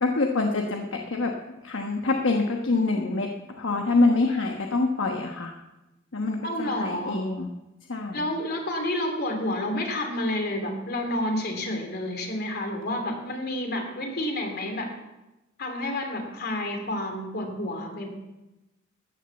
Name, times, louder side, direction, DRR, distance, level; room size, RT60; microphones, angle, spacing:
voice 1, 0.0-1.4 1.6-5.5 6.1-7.5 7.9-8.3, left 3 dB, 70° left, 2 dB, 1.1 m, -25 dB
voice 2, 6.4-7.2 8.1-14.9 15.6-18.1, left 1 dB, 55° left, 3 dB, 3.0 m, -29 dB
14.0 x 9.7 x 7.1 m, 1.0 s
head